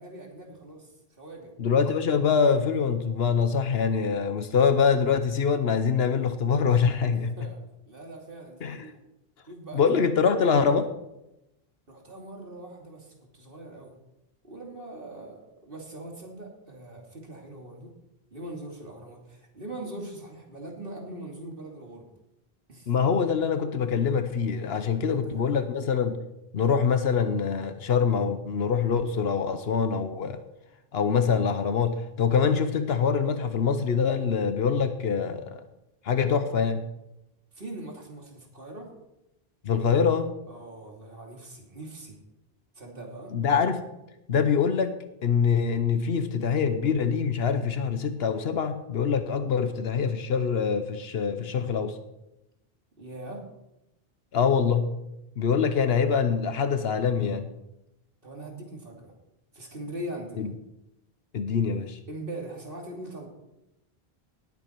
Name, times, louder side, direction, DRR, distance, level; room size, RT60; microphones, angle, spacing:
voice 1, 0.0-1.5 7.2-7.6 7.8-9.0 9.4-10.0 11.9-13.9 14.4-17.9 18.3-22.1 22.7-22.9 24.6-25.5 37.5-38.9 40.5-42.2 42.7-43.4 53.0-53.4 58.2-59.1 59.5-60.5 62.1-63.3, right 1 dB, 60° right, 0 dB, 3.0 m, -41 dB
voice 2, 1.6-7.4 8.6-8.9 9.7-10.9 22.9-26.2 26.5-30.4 30.9-35.6 36.0-36.9 39.6-40.3 43.3-43.8 44.3-52.0 54.3-54.9 55.4-57.5 60.4-60.5 61.3-62.0, left 6 dB, 80° left, 9 dB, 1.1 m, -24 dB
19.0 x 8.3 x 4.6 m, 0.90 s
omnidirectional pair, 1.0 m